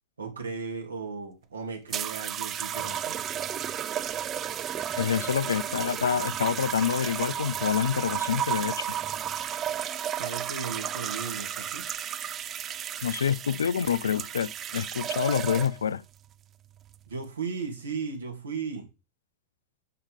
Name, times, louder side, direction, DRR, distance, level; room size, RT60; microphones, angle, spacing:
voice 1, 0.2-3.2 10.1-11.8 17.1-18.9, right 5 dB, 75° right, 3.1 m, -36 dB
sound 1, 1.9-15.9 16.8-17.1, right 10 dB, 30° right, 0.5 m, -33 dB
voice 2, 5.0-8.9 13.0-16.0, left 8 dB, 70° left, 0.4 m, -27 dB
7.2 x 6.6 x 5.3 m
figure-of-eight pair, 90°, 0 cm